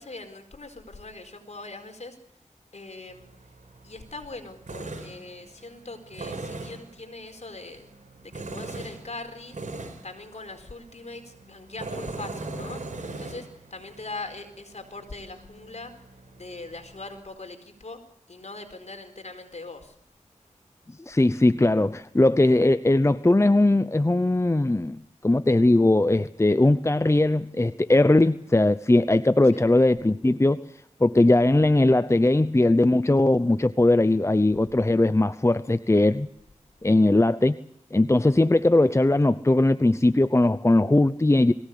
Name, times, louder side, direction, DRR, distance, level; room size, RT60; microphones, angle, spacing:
voice 1, 0.0-2.2 2.7-3.3 3.8-7.9 8.2-9.6 10.0-12.8 13.1-15.9 16.4-18.0 18.3-19.9 29.4-29.7, left 3 dB, 60° left, 6 dB, 4.5 m, -41 dB
Tools, 3.1-17.2, right 2 dB, 75° right, 4.6 m, -41 dB
voice 2, 21.1-30.6 31.0-36.3 36.8-37.6 37.9-41.5, left 2 dB, 20° left, 13 dB, 0.8 m, -20 dB
22.0 x 16.5 x 8.5 m, 0.73 s
cardioid pair, 50°, 13 cm